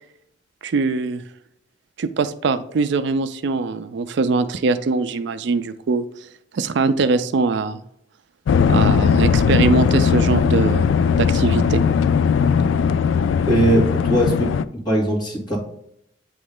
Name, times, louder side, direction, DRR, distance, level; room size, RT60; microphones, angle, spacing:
voice 1, 0.6-1.2 2.0-6.0 6.5-7.8 8.7-10.9 11.2-11.8, right 4 dB, 65° right, 11 dB, 0.4 m, -22 dB
sound 1, 8.5-14.7, left 6 dB, 85° left, 0.3 m, -18 dB
voice 2, 13.5-14.5 14.8-15.6, right 1 dB, 25° left, -6 dB, 2.2 m, -19 dB
8.4 x 3.1 x 3.6 m, 0.74 s
head